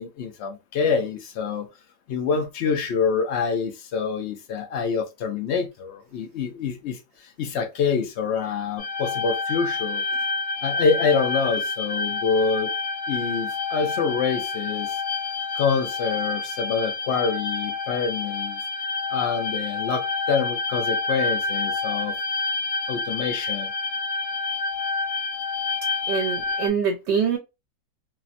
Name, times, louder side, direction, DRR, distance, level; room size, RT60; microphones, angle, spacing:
voice 1, 0.0-1.7 2.1-10.0 10.6-12.7 13.1-15.0 15.5-18.6 19.1-22.2 22.9-23.7, left 5 dB, 90° left, 0.5 m, -26 dB
sound 1, 8.8-26.7, left 4 dB, 40° left, 1.1 m, -28 dB
voice 2, 26.1-27.4, right 6 dB, 80° right, 1.4 m, -24 dB
3.3 x 2.1 x 2.5 m
omnidirectional pair, 1.8 m